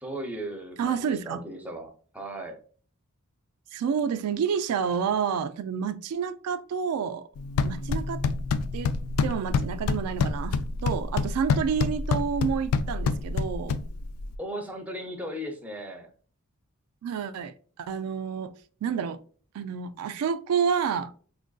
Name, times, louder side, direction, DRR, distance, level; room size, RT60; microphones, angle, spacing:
voice 1, 0.0-2.6 14.4-16.1, right 1 dB, 5° right, 0.5 m, -37 dB
voice 2, 0.8-1.4 3.7-7.3 7.6-8.2 8.7-8.9 9.2-13.8 17.0-18.5 18.8-19.2 19.5-21.1, right 7 dB, 90° right, 0.3 m, -29 dB
sound 1, 7.4-14.4, left 4 dB, 75° left, 0.3 m, -28 dB
4.4 x 2.5 x 2.3 m
head